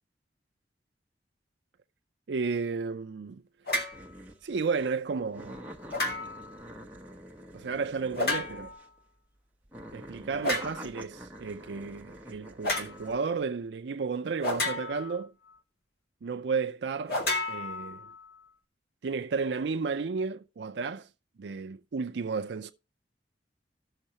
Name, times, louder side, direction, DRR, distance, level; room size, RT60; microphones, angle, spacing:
voice 1, 2.3-3.4 4.4-5.7 7.5-8.7 9.9-15.3 16.2-17.2 17.5-18.1 19.0-21.1 21.4-22.7, right 5 dB, 80° right, 0.5 m, -33 dB
sound 1, 3.7-4.0 5.9-6.5 8.1-8.8 10.4-10.8 12.6-12.9 14.4-15.2 17.1-18.2, left 2 dB, 60° left, 2.1 m, -31 dB
sound 2, 3.9-4.4 4.8-4.9 5.3-9.0 9.6-13.3, equal, 10° right, 1.1 m, -46 dB
16.0 x 6.4 x 2.9 m
head